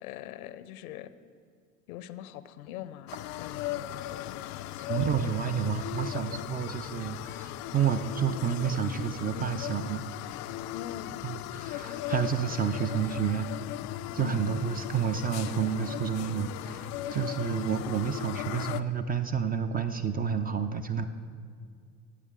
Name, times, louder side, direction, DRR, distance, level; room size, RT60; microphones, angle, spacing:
voice 1, 0.0-1.1 1.9-5.0 10.7-11.3 14.2-14.7, left 10 dB, 65° left, 14 dB, 0.8 m, -43 dB
sound 1, 3.1-18.8, left 14 dB, 40° left, 0.4 m, -37 dB
voice 2, 4.9-10.1 11.2-13.5 14.1-21.1, right 7 dB, 20° right, 8 dB, 0.5 m, -30 dB
21.5 x 8.0 x 3.7 m, 2.2 s
hypercardioid pair, 75°, 47 cm